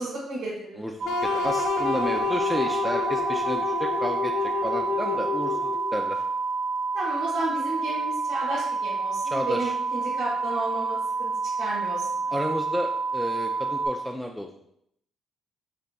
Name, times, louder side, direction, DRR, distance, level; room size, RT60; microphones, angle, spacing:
voice 1, 0.0-0.8 6.9-11.3 11.6-12.3, right 2 dB, 85° right, -9 dB, 1.4 m, -32 dB
voice 2, 0.8-6.2 9.2-9.7 12.3-14.5, equal, ahead, 1 dB, 0.4 m, -32 dB
sound 1, 1.0-6.0, left 7 dB, 80° left, 0.4 m, -29 dB
sound 2, 1.0-13.9, right 4 dB, 60° right, 1.1 m, -28 dB
5.1 x 4.1 x 2.3 m, 0.75 s
cardioid pair, 90°, 0 cm